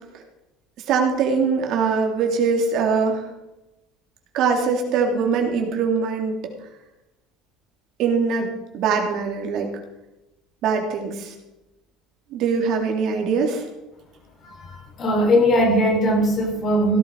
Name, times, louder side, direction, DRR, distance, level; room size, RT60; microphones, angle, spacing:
voice 1, 0.9-3.3 4.3-6.3 8.0-8.5 8.7-9.7 10.6-11.3 12.3-13.6, right 5 dB, 60° right, 2 dB, 3.0 m, -22 dB
voice 2, 14.4-17.0, equal, 40° left, 3 dB, 3.6 m, -20 dB
16.5 x 11.0 x 4.8 m, 0.96 s
cardioid pair, 120°, 0 cm